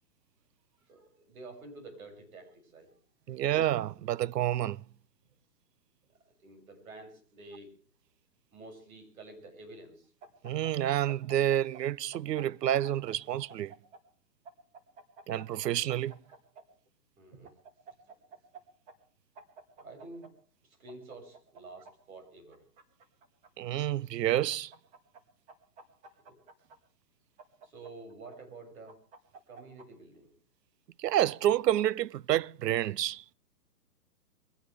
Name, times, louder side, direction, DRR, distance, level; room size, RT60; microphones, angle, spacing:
voice 1, 0.8-3.0 6.1-7.7 8.5-10.1 17.2-17.6 18.1-18.2 19.8-20.3 20.6-22.6 26.1-26.4 27.6-29.0 29.5-30.3, right 2 dB, 60° right, 6.8 m, -49 dB
voice 2, 3.3-4.8 10.4-13.7 15.3-16.2 23.6-24.7 31.0-33.2, right 12 dB, 80° right, 0.6 m, -29 dB
sound 1, 10.2-11.8 12.1-14.0 14.5-16.6 17.4-18.6 18.9-19.0 19.4-20.3 20.9-21.9 22.5-23.5 24.3-25.2 25.5-26.8 27.4-28.4 28.9-29.9, right 4 dB, 15° right, 1.6 m, -51 dB
23.0 x 17.0 x 3.3 m
hypercardioid pair, 155°, 48 cm